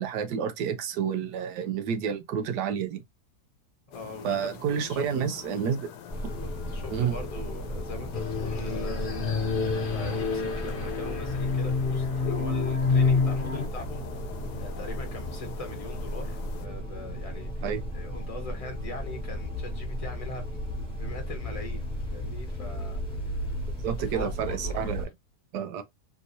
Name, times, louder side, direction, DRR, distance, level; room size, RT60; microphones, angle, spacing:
voice 1, 0.0-3.0 4.2-5.9 6.9-7.1 17.6-17.8 23.8-25.1 25.5-25.8, right 8 dB, 85° right, 1.3 m, -29 dB
sound 1, 3.9-16.7, left 9 dB, 85° left, 1.2 m, -43 dB
voice 2, 3.9-5.1 6.4-9.1 9.8-14.0 14.6-17.7 17.9-23.4 23.8-25.0, left 2 dB, 25° left, 1.1 m, -42 dB
sound 2, 6.1-25.0, equal, 5° left, 1.3 m, -35 dB
sound 3, 8.1-13.7, left 4 dB, 50° left, 0.7 m, -27 dB
3.5 x 2.8 x 2.5 m
omnidirectional pair, 1.7 m